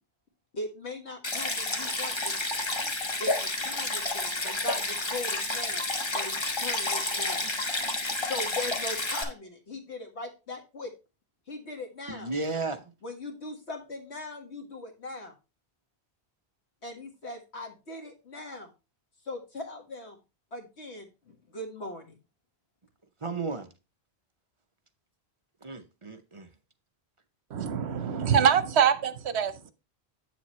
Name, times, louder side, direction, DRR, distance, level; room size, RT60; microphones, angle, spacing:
voice 1, 0.5-2.4 3.2-5.9 6.1-7.5 8.2-10.9 11.5-12.6 13.0-15.3 16.8-18.7 19.3-20.2 20.5-22.2, left 2 dB, 90° left, 1.9 m, -40 dB
Stream, 1.2-9.2, left 2 dB, 25° left, 1.1 m, -30 dB
voice 2, 12.1-12.8 23.2-23.7 25.6-26.5, right 3 dB, 35° right, 0.7 m, -33 dB
voice 3, 27.5-29.7, right 8 dB, 85° right, 1.0 m, -24 dB
8.2 x 7.1 x 3.1 m
omnidirectional pair, 1.1 m